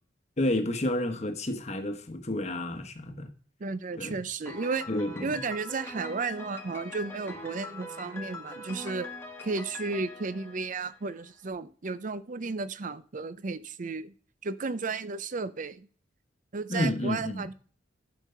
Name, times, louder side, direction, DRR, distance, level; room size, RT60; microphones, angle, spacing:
voice 1, 0.4-3.3 4.0-4.2 4.9-5.4 16.7-17.5, left 1 dB, 35° left, 1.1 m, -30 dB
voice 2, 3.6-4.9 5.2-9.1 9.4-14.1 14.4-15.9 16.5-17.5, right 4 dB, 45° right, 0.5 m, -33 dB
Piano, 4.5-11.3, left 2 dB, 15° left, 1.2 m, -43 dB
11.5 x 4.6 x 5.6 m
head